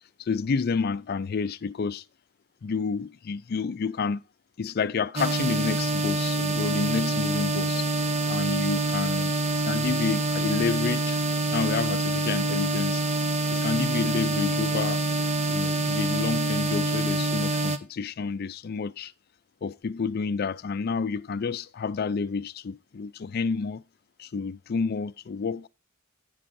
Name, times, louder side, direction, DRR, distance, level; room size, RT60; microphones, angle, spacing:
voice 1, 0.2-2.0 2.6-4.2 4.6-7.9 8.3-9.3 9.7-11.2 11.5-13.0 13.5-15.0 15.5-19.1 19.6-23.8 24.2-25.7, left 5 dB, 50° left, 0.4 m, -29 dB
sound 1, 5.2-17.8, right 2 dB, 35° right, 0.8 m, -26 dB
16.0 x 5.5 x 2.6 m
head